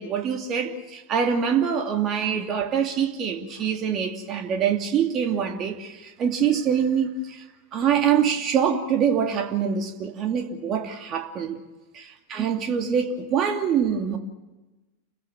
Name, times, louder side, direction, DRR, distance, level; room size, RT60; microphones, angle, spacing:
voice 1, 0.0-7.4 7.7-11.6 11.9-14.2, right 7 dB, 30° right, 2.6 m, -24 dB
30.0 x 16.0 x 7.5 m
figure-of-eight pair, 90°, 0 cm